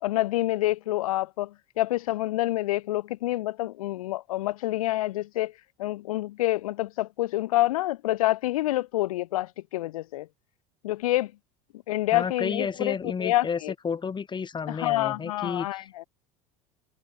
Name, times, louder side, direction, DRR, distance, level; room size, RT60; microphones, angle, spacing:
voice 1, 0.0-1.5 1.8-5.5 5.8-10.3 10.8-11.3 11.9-13.7 14.7-16.0, left 16 dB, 70° left, 1.2 m, -27 dB
voice 2, 12.1-16.1, left 6 dB, 25° left, 4.2 m, -32 dB
figure-of-eight pair, 75°, 19 cm